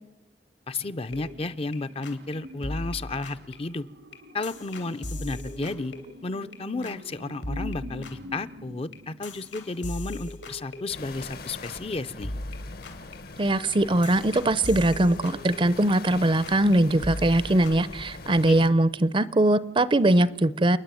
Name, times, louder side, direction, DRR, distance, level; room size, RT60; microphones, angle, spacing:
voice 1, 0.7-3.9 4.3-5.9 6.2-12.3, left 3 dB, 35° left, 12 dB, 0.6 m, -33 dB
sound 1, 0.8-9.9 10.2-10.3, left 1 dB, 80° right, 1.5 m, -45 dB
sound 2, 1.1-1.8 2.0-2.4 2.6-6.6 6.8-7.1 7.4-11.4 11.6-11.9 12.2-16.2 16.4-16.8 17.0-18.0, left 1 dB, 80° left, 2.9 m, -39 dB
sound 3, 10.9-18.7, left 3 dB, 60° left, 1.1 m, -42 dB
voice 2, 13.4-20.8, right 1 dB, 30° right, 18 dB, 0.6 m, -21 dB
29.0 x 10.0 x 9.1 m, 1.0 s
head